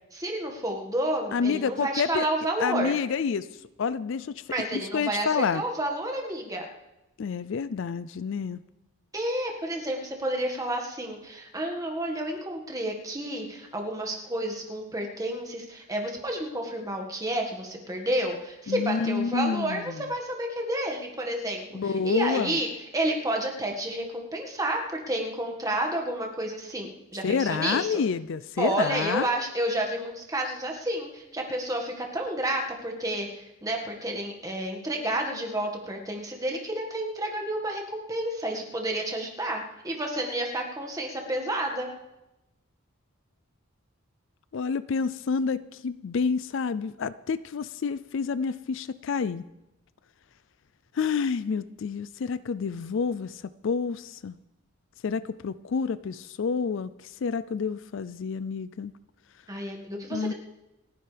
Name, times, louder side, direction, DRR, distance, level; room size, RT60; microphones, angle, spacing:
voice 1, 0.1-2.9 4.5-6.7 9.1-28.0 28.6-41.9 59.5-60.3, right 1 dB, 15° right, 1 dB, 1.7 m, -30 dB
voice 2, 1.3-2.2 2.6-3.5 3.8-4.4 4.7-5.6 7.2-8.6 18.7-20.0 21.7-22.6 27.2-29.3 44.5-49.4 50.9-54.4 55.0-58.9 60.1-60.3, left 5 dB, 60° left, 16 dB, 0.4 m, -28 dB
28.5 x 10.0 x 3.4 m, 0.94 s
head